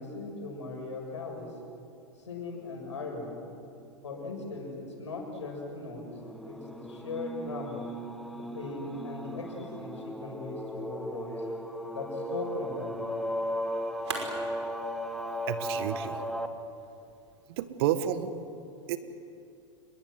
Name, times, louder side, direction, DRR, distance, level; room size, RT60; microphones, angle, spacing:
voice 1, 0.0-1.5 2.2-3.4 4.0-6.1 6.4-7.9 8.3-11.5 11.9-13.1, left 3 dB, 75° left, 2 dB, 7.0 m, -39 dB
sound 1, 6.2-16.5, equal, ahead, 1.7 m, -36 dB
sound 2, 11.7-17.6, right 4 dB, 70° right, 5.5 m, -45 dB
voice 2, 15.5-16.2 17.5-18.3 18.9-19.0, right 11 dB, 55° right, 11 dB, 1.8 m, -30 dB
28.5 x 22.0 x 7.9 m, 2.7 s
figure-of-eight pair, 95°, 15 cm